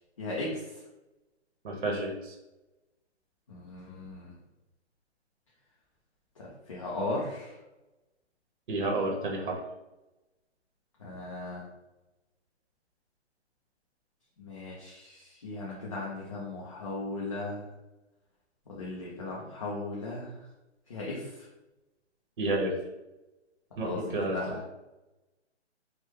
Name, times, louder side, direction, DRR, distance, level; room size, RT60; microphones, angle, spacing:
voice 1, 0.2-0.5 3.5-4.3 6.4-7.5 11.0-11.6 14.4-17.6 18.7-20.3 20.9-21.3 23.8-24.5, left 2 dB, 30° left, -5 dB, 0.5 m, -37 dB
voice 2, 1.6-2.3 8.7-9.6 22.4-22.7 23.8-24.6, right 2 dB, 45° right, -1 dB, 0.9 m, -30 dB
3.2 x 2.2 x 3.1 m, 0.99 s
hypercardioid pair, 160°, 34 cm